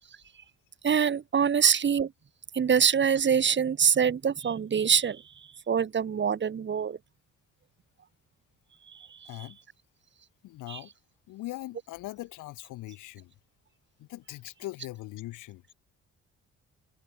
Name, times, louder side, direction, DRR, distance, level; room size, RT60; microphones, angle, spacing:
voice 1, 0.8-2.1 2.5-7.0 8.9-9.3 10.7-10.8, right 7 dB, 40° right, 1.1 m, -25 dB
voice 2, 9.2-9.6 10.4-10.9 11.3-13.3 14.0-15.6, left 17 dB, 90° left, 1.4 m, -41 dB
open air
cardioid pair, 90°, 30 cm